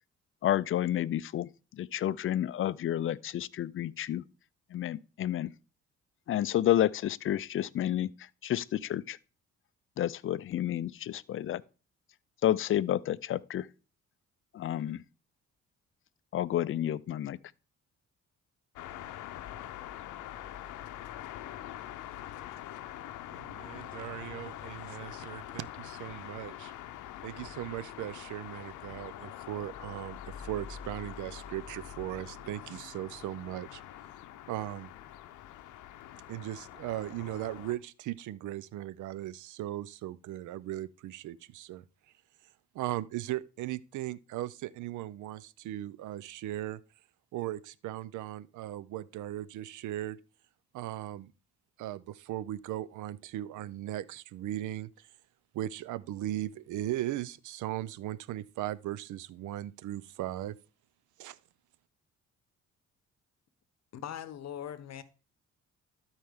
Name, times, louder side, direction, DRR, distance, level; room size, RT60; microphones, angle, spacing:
voice 1, 0.4-4.2 4.7-5.5 6.3-9.2 10.0-11.6 12.4-13.7 14.5-15.0 16.3-17.4, left 12 dB, 45° left, 0.4 m, -30 dB
sound 1, 18.8-37.7, left 11 dB, 90° left, 0.7 m, -44 dB
voice 2, 23.3-26.7 27.2-33.8 34.5-34.9 36.3-41.8 42.7-46.8 47.3-50.2 50.7-51.3 51.8-55.1 55.5-60.6 61.2-61.4, right 14 dB, 75° right, 0.5 m, -38 dB
voice 3, 63.9-65.0, left 10 dB, 60° left, 0.9 m, -40 dB
13.0 x 4.5 x 3.5 m
cardioid pair, 90°, 30 cm